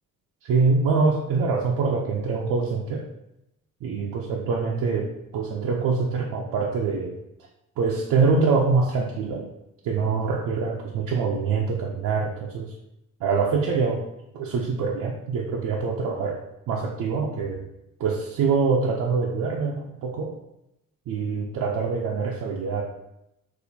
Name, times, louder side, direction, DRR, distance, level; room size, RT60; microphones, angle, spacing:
voice 1, 0.4-3.0 3.8-7.2 7.8-9.5 9.8-12.8 13.2-14.0 14.3-17.7 18.0-20.3 21.1-22.8, right 4 dB, 80° right, -1 dB, 0.6 m, -24 dB
6.1 x 2.5 x 2.7 m, 0.86 s
wide cardioid pair, 175°, 32 cm